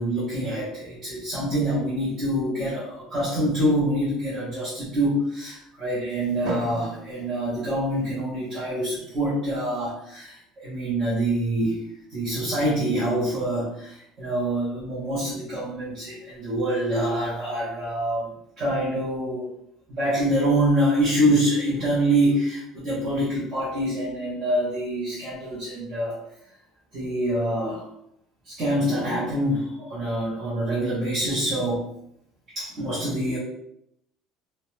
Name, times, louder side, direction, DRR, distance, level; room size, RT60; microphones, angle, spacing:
voice 1, 0.0-11.8 12.1-18.3 18.6-19.5 19.9-26.2 26.9-27.8 28.5-31.8 32.5-33.4, right 1 dB, 30° right, -10 dB, 0.7 m, -25 dB
Drum, 6.4-8.7, equal, 65° right, 0.9 m, -37 dB
2.3 x 2.0 x 3.0 m, 0.75 s
cardioid pair, 170°, 0 cm